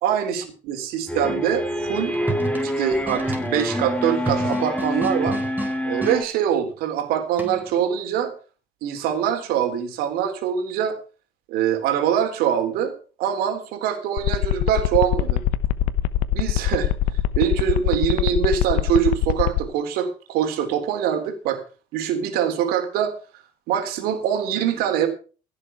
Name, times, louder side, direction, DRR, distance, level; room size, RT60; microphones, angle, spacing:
voice 1, 0.0-2.2 2.6-5.4 5.8-8.3 8.8-11.0 11.5-15.4 16.3-16.9 17.4-21.6 21.9-23.1 23.7-25.1, right 9 dB, 70° right, 6 dB, 3.5 m, -24 dB
sound 1, 1.1-6.2, equal, 10° left, 7.9 m, -26 dB
sound 2, 1.9-6.2 7.4-7.8, right 2 dB, 10° right, 4.0 m, -33 dB
sound 3, 14.2-19.6, left 14 dB, 75° left, 1.0 m, -22 dB
16.0 x 7.7 x 5.8 m, 0.36 s
supercardioid pair, 75°, 16 cm